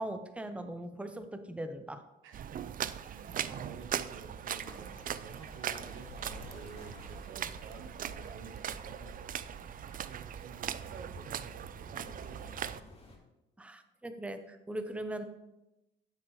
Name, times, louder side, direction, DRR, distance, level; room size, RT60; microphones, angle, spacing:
voice 1, 0.0-2.0 13.6-15.2, right 1 dB, 5° right, 8 dB, 0.7 m, -40 dB
voice 2, 2.2-9.5 9.9-12.7, right 6 dB, 85° right, 6 dB, 0.9 m, -51 dB
sound 1, 2.3-12.8, right 9 dB, 45° right, 0.4 m, -40 dB
sound 2, 2.9-13.2, left 1 dB, 30° left, 2.3 m, -55 dB
sound 3, 4.6-10.0, left 3 dB, 60° left, 1.1 m, -53 dB
9.2 x 7.7 x 3.2 m, 0.97 s
cardioid pair, 90°, 20 cm